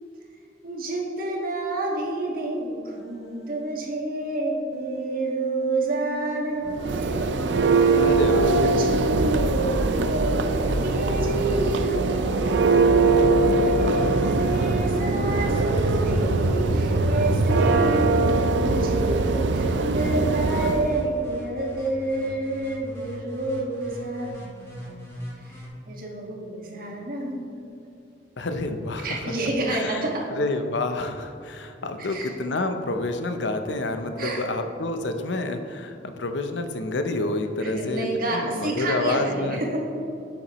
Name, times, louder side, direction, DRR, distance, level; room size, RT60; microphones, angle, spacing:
voice 1, 0.6-7.9 8.2-25.1 25.3-27.8 29.0-30.3 32.0-32.3 34.2-34.4 37.6-39.8, right 2 dB, 50° right, -1 dB, 1.5 m, -29 dB
Human voice, 2.9-3.7 4.7-6.5 7.3-9.0, equal, ahead, 1.2 m, -39 dB
Church bell, 6.7-20.9, right 3 dB, 75° right, 0.5 m, -22 dB
voice 2, 8.0-8.5 28.4-29.3 29.7-30.0 30.4-39.6, left 2 dB, 75° left, 7 dB, 0.7 m, -28 dB
sound 1, 8.4-25.7, equal, 15° left, 1.9 m, -37 dB
10.5 x 7.0 x 3.0 m, 2.6 s
head